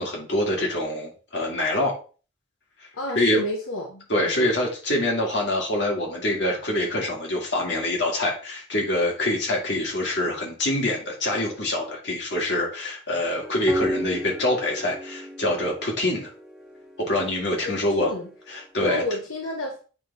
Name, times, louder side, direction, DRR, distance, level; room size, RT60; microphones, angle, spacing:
voice 1, 0.0-2.0 3.2-3.4 4.1-16.3 17.0-18.1 18.5-19.0, left 1 dB, 60° left, -1 dB, 2.2 m, -25 dB
voice 2, 2.9-4.5 17.6-18.3 18.8-19.8, left 1 dB, 90° left, 1 dB, 1.1 m, -31 dB
sound 1, 13.4-18.4, equal, 5° right, 0.9 m, -33 dB
8.6 x 3.4 x 4.1 m, 0.37 s
head